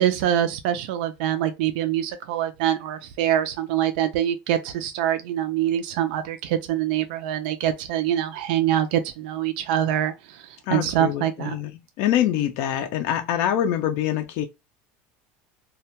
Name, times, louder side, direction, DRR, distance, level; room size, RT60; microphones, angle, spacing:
voice 1, 0.0-10.1 10.7-11.6, right 11 dB, 75° right, 0.3 m, -24 dB
voice 2, 10.7-14.4, left 11 dB, 50° left, 0.3 m, -25 dB
2.1 x 2.1 x 2.7 m
cardioid pair, 170°, 5 cm